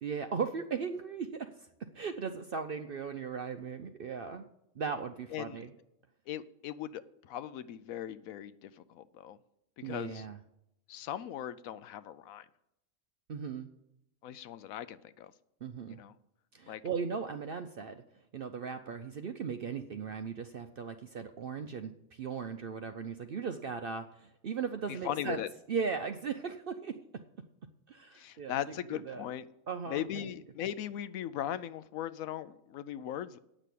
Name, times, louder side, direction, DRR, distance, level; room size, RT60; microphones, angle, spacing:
voice 1, 0.0-4.4 4.8-5.8 9.8-10.4 13.3-13.7 15.6-16.0 16.5-18.0 18.3-25.4 25.7-27.2 27.9-28.6 28.9-29.2 29.7-30.3, right 6 dB, 60° right, 7 dB, 0.6 m, -37 dB
voice 2, 6.3-9.4 9.8-10.2 10.9-12.5 14.2-15.3 15.9-16.1 16.7-16.8 25.0-25.5 28.1-29.4 29.9-33.4, left 11 dB, 75° left, 14 dB, 1.0 m, -39 dB
8.9 x 6.2 x 8.3 m, 0.81 s
omnidirectional pair, 1.5 m